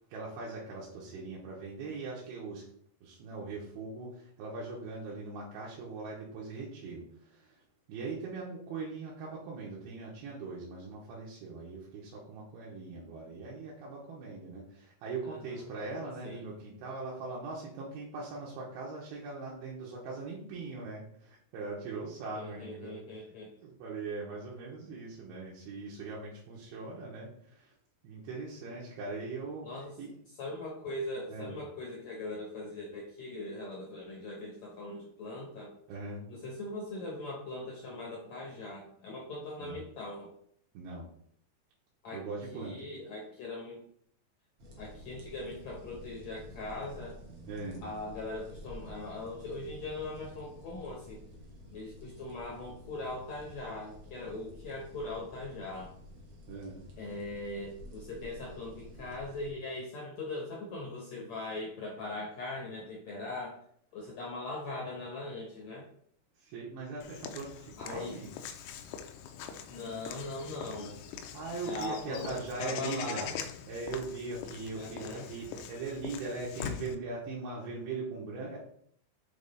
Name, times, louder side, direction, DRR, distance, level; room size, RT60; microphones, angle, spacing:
voice 1, 0.1-2.7 3.0-7.6 7.9-23.0 23.6-27.7 28.0-29.7 30.0-30.1 31.3-31.5 35.9-36.2 39.6-39.8 40.7-41.1 42.1-42.8 47.5-47.8 56.5-56.8 66.4-68.3 70.6-70.9 71.3-73.2 73.7-78.6, right 3 dB, 80° right, -4 dB, 3.0 m, -40 dB
voice 2, 15.2-15.7 16.2-16.4 22.3-23.5 29.6-30.0 30.4-35.8 36.3-40.4 42.0-42.3 42.5-43.8 44.8-47.2 47.8-51.2 51.7-56.0 57.0-63.6 63.9-65.9 67.8-68.2 69.7-71.0 71.6-73.4 74.8-75.3, left 2 dB, 70° left, -2 dB, 1.7 m, -40 dB
sound 1, 44.6-59.5, equal, 60° right, 1.3 m, -50 dB
Walk footsteps / Bird vocalization bird call bird song, 67.0-77.0, left 8 dB, 85° left, 2.5 m, -43 dB
7.2 x 3.6 x 4.0 m, 0.65 s
omnidirectional pair, 4.5 m